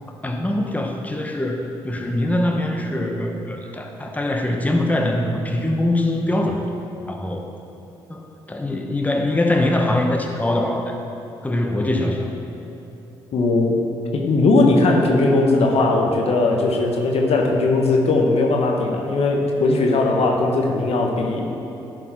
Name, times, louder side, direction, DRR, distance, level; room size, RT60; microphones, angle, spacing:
voice 1, 0.2-6.7 7.1-7.4 8.1-11.0 11.4-12.4, left 1 dB, 15° left, 2 dB, 0.9 m, -23 dB
voice 2, 13.3-13.8 14.1-21.5, left 2 dB, 65° left, 1 dB, 1.0 m, -18 dB
10.5 x 4.9 x 4.5 m, 2.9 s
hypercardioid pair, 45°, 11 cm